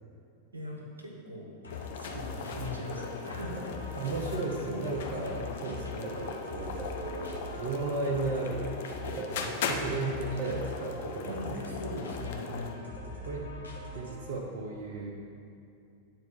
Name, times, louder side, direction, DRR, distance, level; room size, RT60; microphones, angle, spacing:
voice 1, 0.5-1.5 2.0-3.7 4.0-4.1 5.3-5.6 11.3-12.9, equal, 80° right, -1 dB, 1.1 m, -40 dB
sound 1, 1.6-14.4, left 3 dB, 75° left, 1.2 m, -43 dB
sound 2, 1.7-12.8, left 5 dB, 55° left, 0.6 m, -39 dB
sound 3, 3.6-3.9 4.4-4.7 6.0-6.3 6.8-7.1 8.3-8.6 9.2-9.5 10.4-10.7 13.0-13.2 13.8-14.0, right 4 dB, 5° right, 0.6 m, -44 dB
voice 2, 3.9-11.6 13.0-13.5 13.9-15.1, right 3 dB, 50° right, -1 dB, 0.8 m, -35 dB
9.1 x 4.4 x 5.5 m, 2.5 s
figure-of-eight pair, 90°, 0 cm